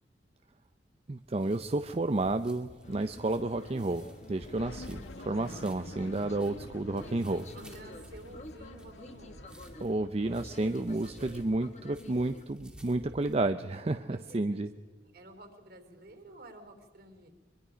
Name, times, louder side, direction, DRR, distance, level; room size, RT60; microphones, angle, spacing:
sound 1, 1.1-13.4, equal, 5° right, 2.4 m, -55 dB
voice 1, 1.1-7.5 9.8-14.7, right 2 dB, 35° right, 9 dB, 0.5 m, -31 dB
sound 2, 2.8-12.4, left 1 dB, 40° left, 1.4 m, -49 dB
sound 3, 4.6-10.1, left 2 dB, 90° left, 0.9 m, -49 dB
voice 2, 7.5-9.4 14.0-14.6 15.0-17.3, right 2 dB, 55° right, 6 dB, 3.3 m, -51 dB
23.0 x 22.5 x 5.1 m, 1.4 s
head